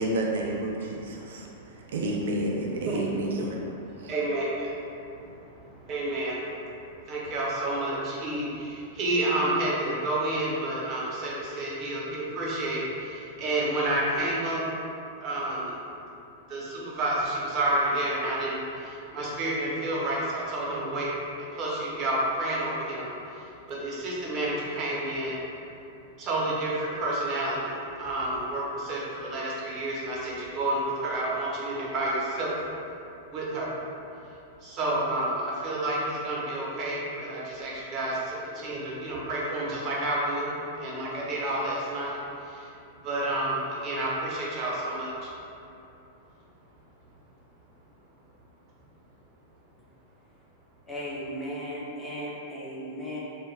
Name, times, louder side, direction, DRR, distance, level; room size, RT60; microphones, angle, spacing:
voice 1, 0.0-3.6 4.0-4.1, right 1 dB, 80° right, -1 dB, 0.3 m, -30 dB
voice 2, 1.4-1.8 2.9-3.0 4.0-6.7 7.0-14.6 15.2-15.8 16.5-25.4 26.2-32.6 33.3-33.7 34.6-42.2 42.4-42.7 43.0-45.3, right 1 dB, 40° right, -5 dB, 0.7 m, -30 dB
voice 3, 50.9-53.2, equal, 10° left, -7 dB, 0.5 m, -36 dB
2.3 x 2.1 x 3.1 m, 2.7 s
hypercardioid pair, 130°, 0 cm